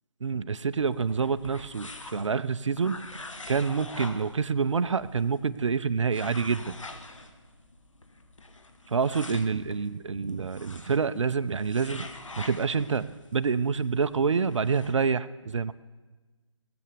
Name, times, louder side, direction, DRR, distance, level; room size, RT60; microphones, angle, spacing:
voice 1, 0.2-3.0 3.5-6.8 8.9-12.1 12.4-13.1 13.3-15.7, right 5 dB, 75° right, 14 dB, 0.6 m, -27 dB
sound 1, 0.7-14.9, left 2 dB, 85° left, 1.4 m, -46 dB
18.0 x 6.9 x 6.7 m, 1.3 s
figure-of-eight pair, 145°, 16 cm